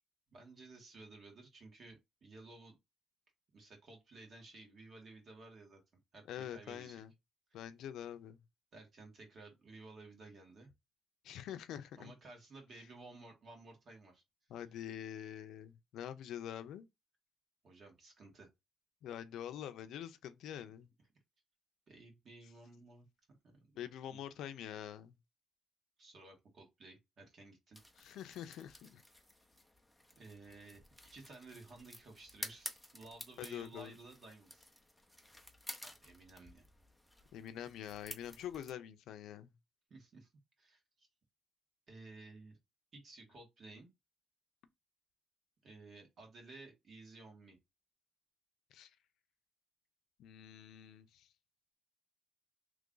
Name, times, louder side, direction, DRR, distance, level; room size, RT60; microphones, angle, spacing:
voice 1, 0.3-2.8 3.5-5.8 6.1-7.0 8.7-10.7 12.0-14.2 17.6-18.5 21.9-23.0 23.4-23.7 24.1-24.2 26.0-27.8 30.2-30.8 31.1-34.7 35.8-36.6 39.9-40.3 40.6-41.1 41.9-42.6 42.9-43.9 45.6-47.6, right 3 dB, 45° right, 1.5 m, -55 dB
voice 2, 6.3-7.1 7.5-8.4 11.2-12.1 12.7-12.8 14.5-16.9 19.0-20.9 23.8-25.2 28.0-29.0 33.4-34.0 37.3-39.5 48.7-48.9 50.2-51.3, left 10 dB, 85° left, 0.5 m, -46 dB
Branch snaps, 27.7-38.7, left 1 dB, ahead, 0.6 m, -52 dB
3.1 x 2.4 x 3.8 m
cardioid pair, 130°, 0 cm